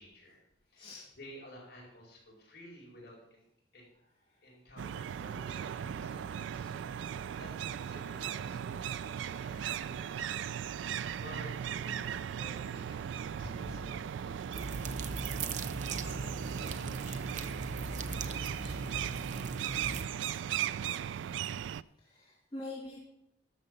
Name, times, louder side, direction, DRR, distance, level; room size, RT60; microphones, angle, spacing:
voice 1, 0.0-3.5 3.7-3.9 4.4-10.5 10.9-15.4 15.7-19.7, equal, 55° left, -3 dB, 4.9 m, -53 dB
voice 2, 0.7-1.1 4.3-4.5 7.2-7.4 22.0-23.0, left 2 dB, 25° left, -7 dB, 2.4 m, -46 dB
sound 1, 4.8-21.8, right 9 dB, 80° right, 0.3 m, -38 dB
sound 2, 14.5-20.0, right 3 dB, 40° right, 0.6 m, -39 dB
12.5 x 6.9 x 5.4 m, 0.78 s
head